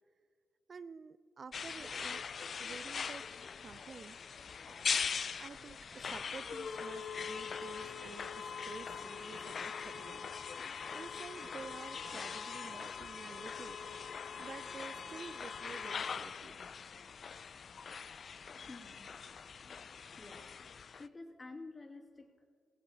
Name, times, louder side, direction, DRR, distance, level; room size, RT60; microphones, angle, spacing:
voice 1, 0.7-2.3 2.6-3.3 3.6-4.5 5.4-13.8 14.4-16.6, right 5 dB, 50° right, 14 dB, 0.4 m, -50 dB
sound 1, 1.5-21.1, left 6 dB, 55° left, 0.3 m, -42 dB
sound 2, 4.5-5.5 5.9-10.4 10.8-15.3, right 2 dB, 70° right, 3.9 m, -59 dB
voice 2, 18.7-19.1 20.2-20.5 21.0-22.5, left 3 dB, 35° left, 0 dB, 2.3 m, -50 dB
16.5 x 16.5 x 2.8 m, 2.1 s
supercardioid pair, 45°, 0 cm